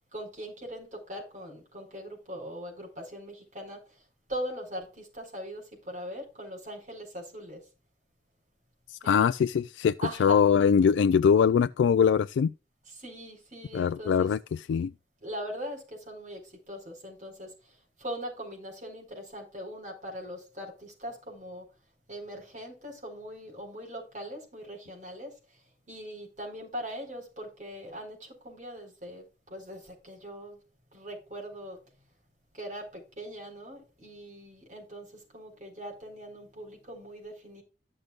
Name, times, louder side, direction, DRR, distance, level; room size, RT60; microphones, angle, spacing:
voice 1, 0.1-4.0 4.3-7.6 9.0-9.2 10.0-10.5 12.9-14.3 15.2-21.6 22.1-25.4 25.9-30.6 30.9-31.8 32.5-37.6, equal, 40° right, 4.3 m, -41 dB
voice 2, 8.9-12.5 13.7-14.4 14.7-14.9, left 7 dB, 85° left, 0.3 m, -22 dB
13.5 x 6.6 x 2.4 m
head